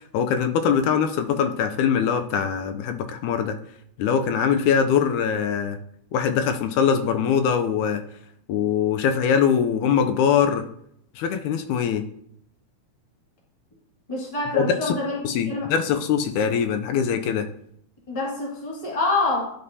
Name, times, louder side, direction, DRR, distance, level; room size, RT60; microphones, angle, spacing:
voice 1, 0.1-3.6 4.0-5.8 6.1-8.0 8.5-10.7 11.2-12.0 14.5-14.9 15.2-17.5, left 7 dB, 80° left, 7 dB, 2.0 m, -22 dB
voice 2, 14.1-15.2 15.5-15.7 18.1-19.5, left 2 dB, 15° left, -4 dB, 1.4 m, -26 dB
12.0 x 5.4 x 2.7 m, 0.69 s
omnidirectional pair, 3.6 m